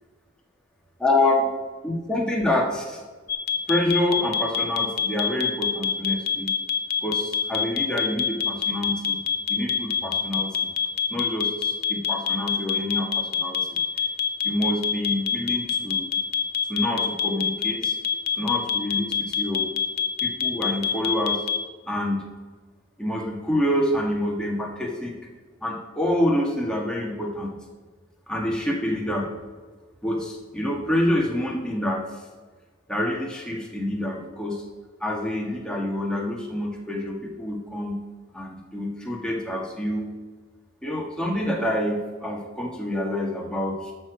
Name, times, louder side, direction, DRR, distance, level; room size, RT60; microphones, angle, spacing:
voice 1, 1.0-1.5 1.8-3.0 3.7-6.5 7.0-10.5 11.1-13.8 14.4-16.1 16.7-18.0 18.4-19.7 20.2-21.4 21.9-22.3 23.0-25.1 25.6-27.6 28.3-29.3 30.0-32.0 32.9-34.6 35.0-38.0 38.3-40.0 40.8-43.9, left 1 dB, 5° left, -1 dB, 1.6 m, -27 dB
sound 1, 3.3-21.6, left 7 dB, 50° left, 0.7 m, -24 dB
12.5 x 6.6 x 5.1 m, 1.4 s
head